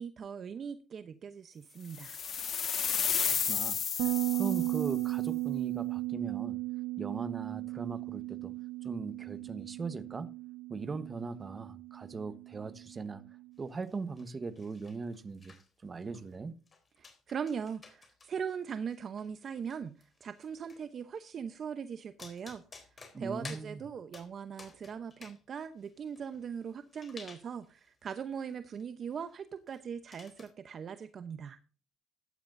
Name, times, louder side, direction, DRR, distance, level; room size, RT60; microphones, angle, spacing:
voice 1, 0.0-2.2 17.0-22.6 23.2-31.6, right 7 dB, 45° right, 0.8 m, -40 dB
sound 1, 1.9-5.0, left 7 dB, 45° left, 1.6 m, -32 dB
voice 2, 3.0-6.6 7.0-8.5 8.8-10.3 10.7-13.2 13.6-15.5 15.8-16.5 23.1-23.8, right 4 dB, 25° right, 1.2 m, -40 dB
Bass guitar, 4.0-13.4, right 20 dB, 85° right, 1.0 m, -36 dB
sound 2, 13.7-14.3 14.6-15.7 16.0-16.3 16.7-18.3 18.6-20.8 21.9-22.0 22.2-23.7 24.1-24.3 24.6-25.4 25.7-27.9 28.2-28.5 28.8-28.9 29.1-29.3 29.7-29.8 30.1-30.5, left 4 dB, 30° left, 3.6 m, -53 dB
14.5 x 11.5 x 2.7 m
cardioid pair, 120°, 0 cm